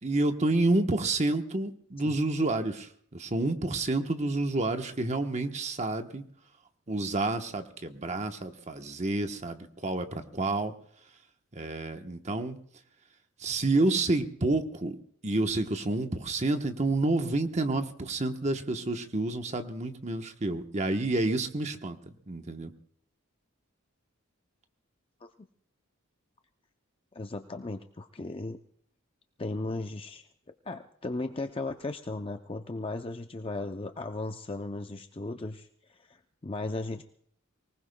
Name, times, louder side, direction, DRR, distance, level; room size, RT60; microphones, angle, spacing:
voice 1, 0.0-6.2 6.9-10.7 11.5-12.6 13.4-15.0 15.2-22.7, right 2 dB, 30° right, 6 dB, 1.0 m, -29 dB
voice 2, 27.1-28.6 29.4-30.2 30.7-37.0, left 2 dB, 25° left, 6 dB, 0.5 m, -36 dB
24.5 x 19.0 x 2.3 m, 0.62 s
head